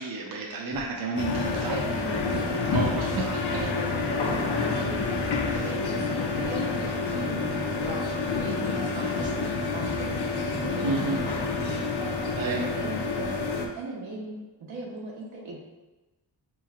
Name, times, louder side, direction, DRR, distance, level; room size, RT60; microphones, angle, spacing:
voice 1, 0.0-1.8 2.7-3.4 5.4-5.7 10.8-11.2 12.3-12.6, right 3 dB, 50° right, -1 dB, 0.5 m, -31 dB
sound 1, 0.7-0.9 1.4-1.5 2.0-2.4 2.6-3.3 3.5-4.3 4.6-4.7 4.9-5.8 6.0-6.1 6.4-6.6 6.9-7.2 7.7-8.0 8.3-9.6 9.9-10.0 10.6-10.8 11.1-11.4 11.7-11.8, left 1 dB, 5° left, 0.4 m, -43 dB
sound 2, 1.2-13.7, left 4 dB, 60° left, 0.5 m, -28 dB
voice 2, 1.6-2.5 3.1-14.3 14.6-15.6, right 2 dB, 75° right, -3 dB, 1.0 m, -38 dB
4.4 x 3.0 x 2.4 m, 1.1 s
wide cardioid pair, 125°, 47 cm